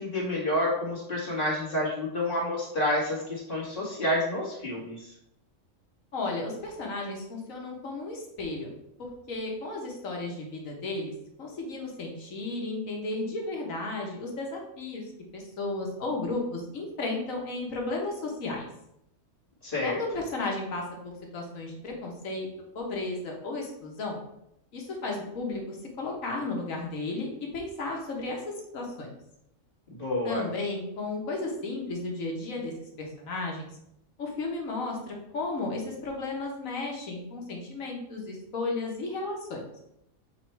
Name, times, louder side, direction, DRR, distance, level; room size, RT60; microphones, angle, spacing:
voice 1, 0.0-5.1 19.6-20.0 29.9-30.5, left 1 dB, 40° left, -5 dB, 2.2 m, -29 dB
voice 2, 6.1-8.7 9.3-11.1 11.4-15.0 15.3-18.7 19.8-22.5 22.7-24.2 24.7-27.3 27.5-28.4 28.7-29.1 30.2-32.7 33.0-33.7 34.2-39.6, left 2 dB, 75° left, 0 dB, 1.6 m, -34 dB
7.1 x 3.1 x 4.5 m, 0.79 s
omnidirectional pair, 1.4 m